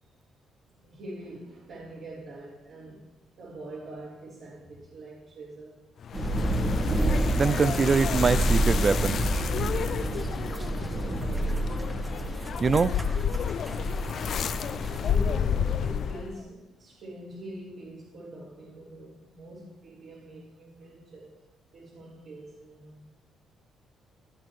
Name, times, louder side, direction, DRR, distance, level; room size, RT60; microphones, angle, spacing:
voice 1, 0.8-3.1 3.4-5.8 9.8-11.8 15.0-21.4 21.7-23.0, right 1 dB, 65° right, -8 dB, 3.8 m, -44 dB
sound 1, 6.0-16.4, left 8 dB, 60° left, 0.5 m, -31 dB
sound 2, 6.1-15.1, right 1 dB, 20° right, 1.3 m, -29 dB
voice 2, 7.3-9.2 12.6-12.9, right 5 dB, 40° right, 16 dB, 0.4 m, -23 dB
17.0 x 10.5 x 3.2 m, 0.99 s
cardioid pair, 90°, 0 cm